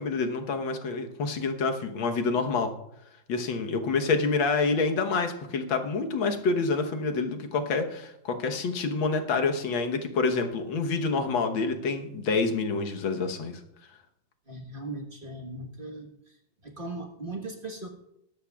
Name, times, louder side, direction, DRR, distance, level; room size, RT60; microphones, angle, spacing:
voice 1, 0.0-2.7 3.3-13.6, left 4 dB, 85° left, 5 dB, 1.9 m, -27 dB
voice 2, 14.5-16.4 16.6-17.9, right 2 dB, 30° right, 2 dB, 1.3 m, -38 dB
21.5 x 12.5 x 2.3 m, 0.82 s
omnidirectional pair, 2.1 m